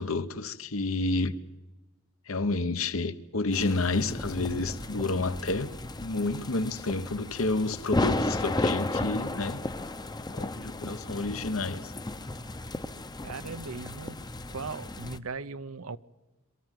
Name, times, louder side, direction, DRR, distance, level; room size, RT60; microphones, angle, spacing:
voice 1, 0.0-1.4 2.3-5.7 6.0-9.6 10.3-11.9, left 3 dB, 70° left, 1.2 m, -30 dB
sound 1, 3.5-15.2, left 2 dB, 20° left, 0.8 m, -34 dB
voice 2, 13.2-14.2 14.5-16.0, right 4 dB, 85° right, 0.8 m, -38 dB
23.0 x 14.0 x 9.2 m
head